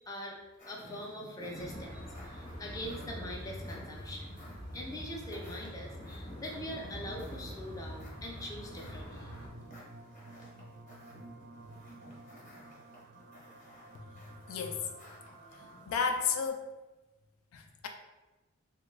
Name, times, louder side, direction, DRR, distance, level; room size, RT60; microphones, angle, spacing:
voice 1, 0.1-0.4 0.7-4.3 4.7-9.3, equal, 15° left, -2 dB, 0.5 m, -43 dB
sound 1, 0.6-16.5, left 1 dB, 35° left, 0.8 m, -52 dB
sound 2, 1.6-9.5, equal, 75° right, 0.9 m, -45 dB
sound 3, 6.5-16.5, right 2 dB, 45° right, 0.3 m, -53 dB
voice 2, 14.5-14.9 15.9-16.7 17.5-17.9, left 6 dB, 75° left, 5 dB, 0.3 m, -32 dB
3.2 x 2.2 x 3.1 m, 1.1 s
head